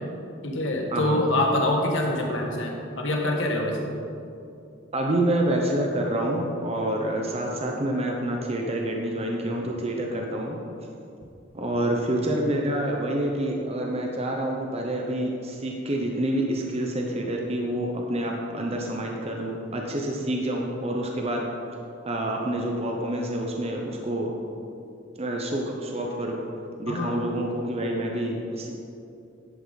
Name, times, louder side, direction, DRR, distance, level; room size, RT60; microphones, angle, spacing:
voice 1, 0.4-3.9 26.9-27.1, left 1 dB, 75° left, 1 dB, 1.6 m, -25 dB
voice 2, 4.9-10.6 11.5-21.5 22.1-24.3 25.2-26.4 26.8-28.7, right 1 dB, 35° right, 0 dB, 0.9 m, -27 dB
11.0 x 8.6 x 4.1 m, 2.6 s
head